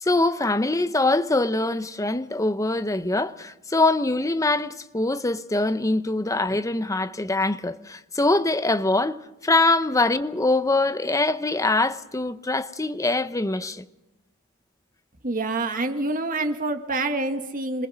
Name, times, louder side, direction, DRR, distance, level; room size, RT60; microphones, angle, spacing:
voice 1, 0.0-13.9, left 2 dB, 15° left, 0.8 m, -23 dB
voice 2, 15.2-17.9, right 2 dB, 40° right, 1.8 m, -26 dB
26.5 x 20.0 x 6.3 m
head